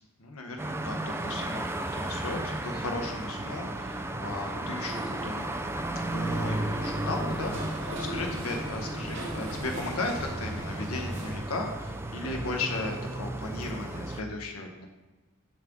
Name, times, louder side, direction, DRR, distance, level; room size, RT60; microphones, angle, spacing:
voice 1, 0.2-5.5 6.1-14.9, left 2 dB, 75° left, 2 dB, 0.8 m, -36 dB
sound 1, 0.6-14.2, right 1 dB, 10° right, 0.3 m, -34 dB
sound 2, 2.8-9.6, equal, 80° right, 1.9 m, -45 dB
sound 3, 6.1-11.4, equal, 60° right, 2.2 m, -40 dB
7.2 x 6.0 x 3.5 m, 1.1 s
head